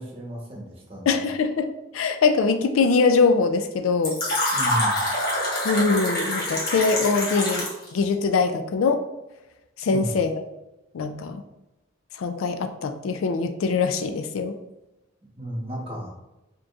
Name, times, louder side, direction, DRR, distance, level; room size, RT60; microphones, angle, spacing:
voice 1, 0.0-1.2 4.5-5.0 9.9-10.1 15.4-16.1, equal, 30° right, -2 dB, 1.0 m, -33 dB
voice 2, 1.1-1.7 1.9-4.2 5.6-7.7 7.9-9.0 9.8-10.3 10.9-11.4 12.1-14.5, left 4 dB, 85° left, 8 dB, 0.4 m, -22 dB
Fill (with liquid), 4.0-7.9, left 1 dB, 50° left, 1.3 m, -25 dB
5.0 x 2.9 x 2.4 m, 0.98 s
head